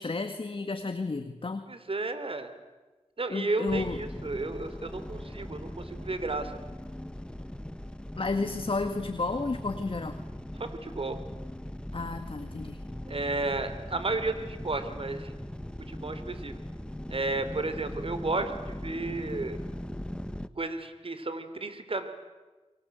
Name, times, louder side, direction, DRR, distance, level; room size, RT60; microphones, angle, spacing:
voice 1, 0.0-1.6 3.3-4.0 8.2-10.2 11.9-12.8, left 3 dB, 50° left, 8 dB, 1.7 m, -32 dB
voice 2, 1.7-2.5 3.2-6.5 10.6-11.2 13.1-15.3 15.9-16.5 17.1-19.6 20.6-22.1, right 3 dB, 55° right, 10 dB, 3.4 m, -32 dB
sound 1, 3.7-20.5, left 1 dB, 10° left, 1.3 m, -40 dB
29.5 x 23.0 x 8.1 m, 1.2 s
cardioid pair, 50°, 12 cm